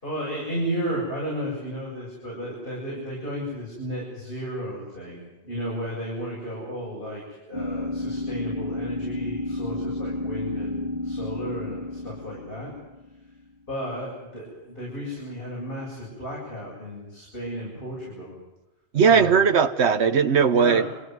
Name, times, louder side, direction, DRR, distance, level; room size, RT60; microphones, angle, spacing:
voice 1, 0.0-12.7 13.7-18.3 19.1-19.4 20.5-20.9, equal, 55° left, -5 dB, 8.4 m, -33 dB
sound 1, 7.5-13.3, left 2 dB, 30° right, 2.0 m, -31 dB
voice 2, 18.9-21.0, right 6 dB, 85° right, 7 dB, 1.4 m, -19 dB
26.5 x 16.0 x 9.4 m, 1.0 s
omnidirectional pair, 1.1 m